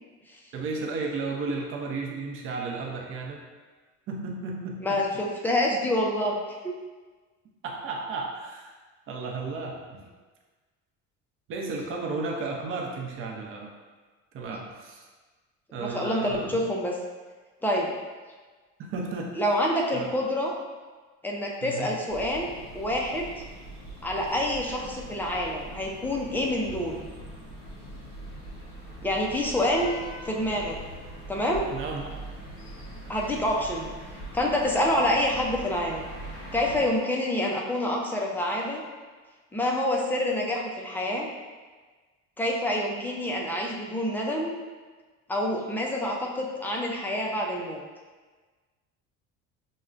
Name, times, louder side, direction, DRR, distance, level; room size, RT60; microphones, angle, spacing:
voice 1, 0.5-3.4 4.1-5.0 7.6-8.7 9.1-10.0 11.5-13.7 14.3-15.0 15.7-16.6 18.9-19.3 19.9-20.1 21.6-21.9 31.7-32.2, right 3 dB, 45° right, 0 dB, 0.6 m, -33 dB
voice 2, 4.8-6.7 15.8-16.9 17.6-17.9 19.4-20.5 21.2-22.5 22.7-23.3 24.0-27.0 29.0-29.9 30.2-30.8 31.3-31.7 33.1-33.9 34.3-36.1 36.5-38.8 39.5-41.3 42.4-44.5 45.3-47.8, left 1 dB, 5° left, -1 dB, 0.4 m, -27 dB
sound 1, 22.1-36.9, equal, 45° left, 1.1 m, -42 dB
6.2 x 2.1 x 2.4 m, 1.4 s
cardioid pair, 145°, 30 cm